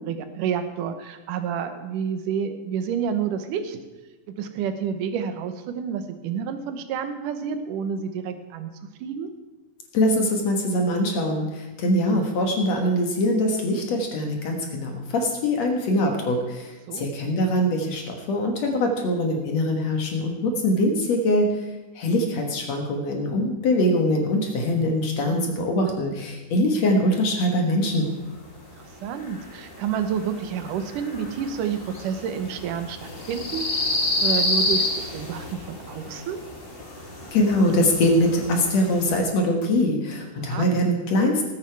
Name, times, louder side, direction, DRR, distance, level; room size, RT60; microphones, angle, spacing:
voice 1, 0.0-3.8 4.3-8.7 9.0-9.3 16.9-17.1 28.8-33.9 34.2-36.4 40.4-40.7, right 7 dB, 80° right, 9 dB, 2.6 m, -29 dB
voice 2, 9.9-21.5 22.0-28.1 37.3-41.5, left 1 dB, 60° left, 2 dB, 2.5 m, -23 dB
sound 1, 28.3-39.2, left 2 dB, 25° left, 1.4 m, -30 dB
18.5 x 9.1 x 4.7 m, 1.1 s
omnidirectional pair, 3.7 m